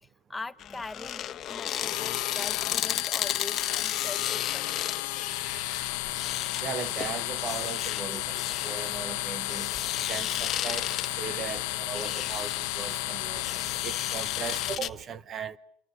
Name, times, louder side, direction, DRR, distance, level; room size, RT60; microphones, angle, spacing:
voice 1, 0.0-4.9 10.2-10.4 10.9-11.0, left 3 dB, 15° left, 1.2 m, -42 dB
sound 1, 0.6-14.9, left 11 dB, 45° left, 1.3 m, -35 dB
sound 2, 1.8-14.8, left 23 dB, 80° left, 1.0 m, -33 dB
voice 2, 5.1-6.0 6.6-9.7 10.1-13.4 13.8-15.6, right 7 dB, 40° right, 1.1 m, -38 dB
sound 3, 5.3-15.0, right 13 dB, 85° right, 1.1 m, -51 dB
28.0 x 24.5 x 6.7 m
supercardioid pair, 115°, 0 cm